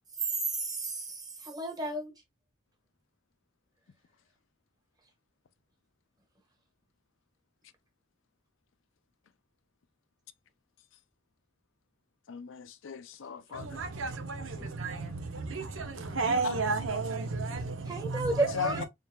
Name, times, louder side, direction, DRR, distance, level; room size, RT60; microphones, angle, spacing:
voice 1, 0.5-2.1 17.9-18.9, right 2 dB, 20° right, 1.3 m, -33 dB
voice 2, 12.3-13.8 16.4-16.5 18.5-18.8, left 6 dB, 80° left, 0.5 m, -37 dB
voice 3, 13.5-18.9, right 3 dB, 80° right, 0.9 m, -33 dB
4.1 x 3.7 x 2.3 m
head